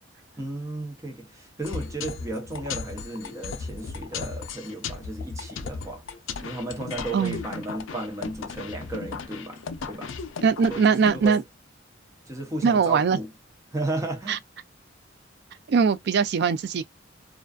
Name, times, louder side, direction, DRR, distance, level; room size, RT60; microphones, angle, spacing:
voice 1, 0.4-6.0 6.4-10.1 10.7-11.4 12.3-13.3 13.7-14.4, right 2 dB, 15° right, 0.7 m, -34 dB
sound 1, 1.6-11.3, left 5 dB, 80° left, 0.5 m, -36 dB
voice 2, 10.4-11.4 12.6-13.2 14.3-14.4 15.7-16.8, right 6 dB, 55° right, 0.3 m, -21 dB
2.5 x 2.3 x 2.2 m
head